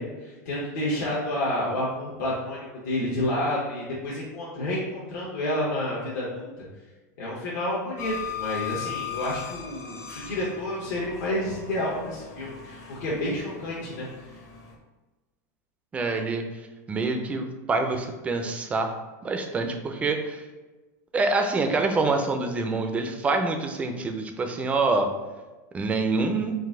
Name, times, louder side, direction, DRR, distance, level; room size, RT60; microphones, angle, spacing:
voice 1, 0.0-6.6 7.2-14.1, left 1 dB, 70° left, -7 dB, 1.1 m, -30 dB
sound 1, 8.0-14.7, left 9 dB, 30° left, 0.6 m, -38 dB
voice 2, 15.9-16.4 16.9-18.9 19.2-20.5 21.1-25.1 25.7-26.5, right 3 dB, 15° right, 5 dB, 0.3 m, -26 dB
3.9 x 2.6 x 3.6 m, 1.2 s
supercardioid pair, 150°, 9 cm